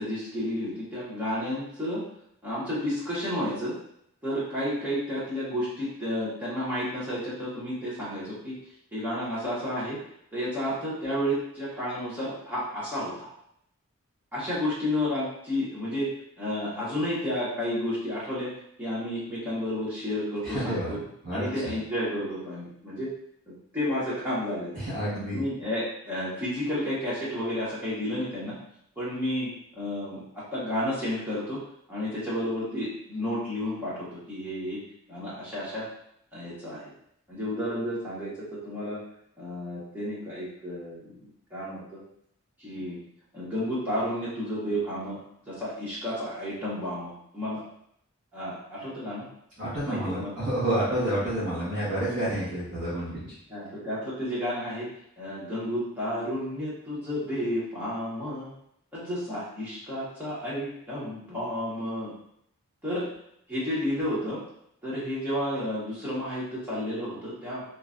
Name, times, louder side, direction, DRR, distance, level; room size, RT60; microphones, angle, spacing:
voice 1, 0.0-2.0 2.4-3.7 4.2-8.6 8.9-10.0 10.3-13.3 14.3-16.1 16.4-18.5 18.8-21.0 21.3-23.1 23.5-24.9 25.3-28.6 29.0-31.6 31.9-34.8 35.1-35.9 36.3-36.9 37.3-39.0 39.4-41.2 41.5-42.0 42.6-43.0 43.3-47.6 48.3-49.3 49.8-50.3 53.5-54.9 55.2-58.5 58.9-62.1 62.8-63.0 63.5-64.4 64.8-67.6, left 1 dB, 10° right, -9 dB, 0.9 m, -31 dB
voice 2, 20.4-20.9 21.2-21.7 24.7-25.4 49.6-53.3, right 1 dB, 50° right, -13 dB, 1.4 m, -29 dB
3.0 x 2.2 x 2.5 m, 0.72 s
head